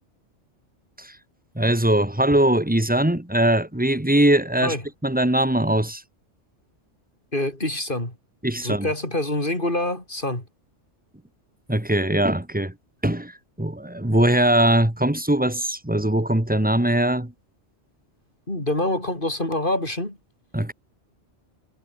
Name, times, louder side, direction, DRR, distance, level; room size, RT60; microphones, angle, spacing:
voice 1, 1.6-4.7 5.0-6.0 8.4-8.9 11.7-12.7 13.0-17.3 20.5-20.7, right 1 dB, 5° right, 2.0 m, -21 dB
voice 2, 7.3-8.1 8.6-10.4 18.5-20.2, left 1 dB, 45° left, 6.8 m, -26 dB
omnidirectional pair, 1.2 m